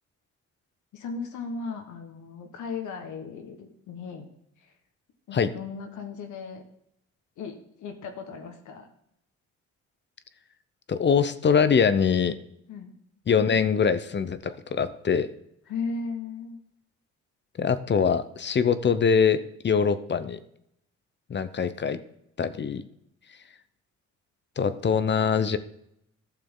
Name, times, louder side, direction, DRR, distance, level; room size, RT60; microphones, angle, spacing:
voice 1, 0.9-4.3 4.6-4.7 5.3-6.6 7.4-8.9 12.7-12.9 15.7-16.6, left 4 dB, 75° left, 4 dB, 1.4 m, -36 dB
voice 2, 10.9-12.4 13.3-15.3 17.6-20.4 21.3-22.0 22.4-22.8 24.6-25.6, left 6 dB, 35° left, 13 dB, 0.7 m, -23 dB
12.0 x 6.8 x 3.7 m, 0.75 s
cardioid pair, 90°, 30 cm